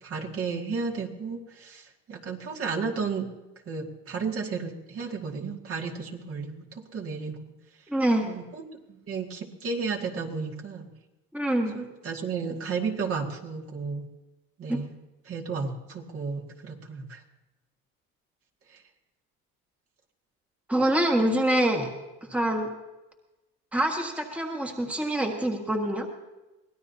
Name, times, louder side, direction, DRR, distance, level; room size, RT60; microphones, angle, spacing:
voice 1, 0.0-3.3 3.7-7.5 8.2-10.9 11.7-14.1 14.6-14.9 15.3-17.2 18.7-18.8, right 5 dB, 45° right, 1 dB, 2.1 m, -33 dB
voice 2, 7.9-8.3 11.3-11.7 14.7-14.8 20.7-21.9 22.3-22.7 23.7-26.1, right 1 dB, 5° right, 2 dB, 1.6 m, -25 dB
23.5 x 17.0 x 2.8 m, 1.0 s
supercardioid pair, 105°, 32 cm